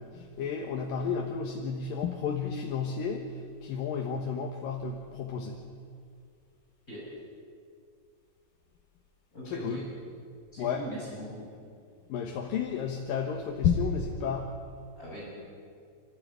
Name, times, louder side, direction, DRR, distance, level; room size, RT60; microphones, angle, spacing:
voice 1, 0.0-3.3 3.6-5.7 9.5-9.9 10.6-10.9 12.1-14.6, left 6 dB, 85° left, 2 dB, 3.0 m, -32 dB
voice 2, 9.3-9.8 10.5-11.4 15.0-15.3, right 1 dB, 25° left, -6 dB, 7.2 m, -41 dB
27.0 x 14.5 x 9.7 m, 2.3 s
omnidirectional pair, 3.9 m